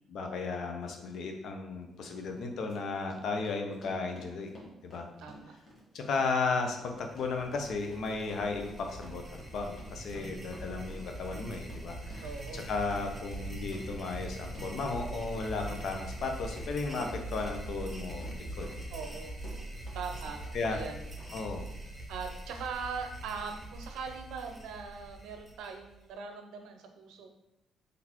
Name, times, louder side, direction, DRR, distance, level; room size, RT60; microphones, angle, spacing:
voice 1, 0.1-4.5 4.8-5.1 5.9-12.3 12.5-18.7 20.5-20.8 21.3-21.7, left 4 dB, 70° left, 4 dB, 0.6 m, -35 dB
Run, 1.7-1.8 2.3-20.0 20.3-20.9 21.2-21.3, left 1 dB, 35° left, 1.4 m, -52 dB
voice 2, 5.2-5.5 10.1-10.6 12.2-12.6 18.9-19.4 19.9-21.1 22.1-27.3, right 5 dB, 90° right, 5 dB, 0.5 m, -41 dB
sound 1, 7.0-26.1, right 2 dB, 5° right, 0.9 m, -43 dB
4.0 x 3.3 x 3.0 m, 0.92 s
cardioid pair, 90°, 0 cm